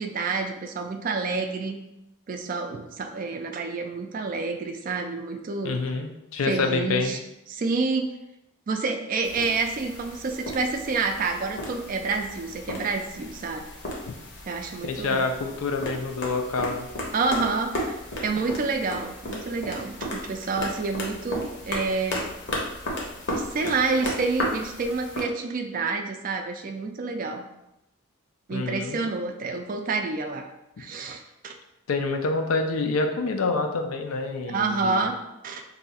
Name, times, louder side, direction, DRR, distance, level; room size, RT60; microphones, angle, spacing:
voice 1, 0.0-1.8 2.3-5.8 6.5-7.2 7.5-8.1 8.7-13.6 14.5-15.3 17.1-22.2 23.3-27.5 28.5-30.4 30.8-31.5 34.5-35.2 35.4-35.6, right 4 dB, 40° right, 5 dB, 0.3 m, -28 dB
voice 2, 5.6-7.2 14.8-16.9 28.5-29.0 31.9-35.1, left 3 dB, 80° left, 5 dB, 0.5 m, -27 dB
sound 1, 9.2-25.2, left 1 dB, 55° left, 0.8 m, -35 dB
2.7 x 2.3 x 4.1 m, 0.89 s
head